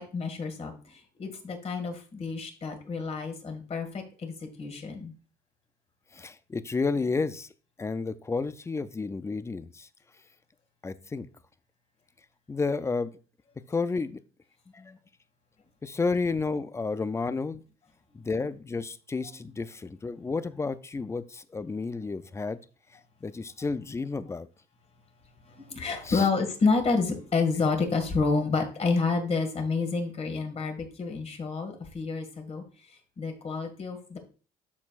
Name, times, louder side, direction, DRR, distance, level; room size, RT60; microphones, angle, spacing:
voice 1, 0.0-5.1 25.4-32.6 32.9-34.2, left 4 dB, 40° left, 5 dB, 1.9 m, -29 dB
voice 2, 6.1-7.5 7.8-9.9 10.8-11.3 12.5-13.1 13.7-14.2 14.7-15.0 15.8-17.6 18.1-22.6 23.2-24.5 26.0-26.3, left 4 dB, 15° left, 14 dB, 0.4 m, -31 dB
12.5 x 4.4 x 2.5 m, 0.37 s
cardioid pair, 110°, 17 cm